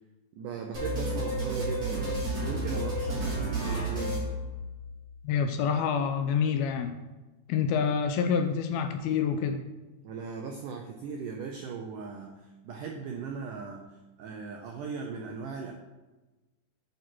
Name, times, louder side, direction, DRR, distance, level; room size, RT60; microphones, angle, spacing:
voice 1, 0.4-4.2 10.0-13.9 14.2-15.7, right 5 dB, 85° right, 1 dB, 1.8 m, -38 dB
sound 1, 0.7-5.0, right 1 dB, 20° right, 3.5 m, -31 dB
voice 2, 5.2-7.0 7.5-9.6, left 6 dB, 80° left, 7 dB, 2.3 m, -27 dB
9.2 x 6.5 x 4.5 m, 1.1 s
omnidirectional pair, 4.6 m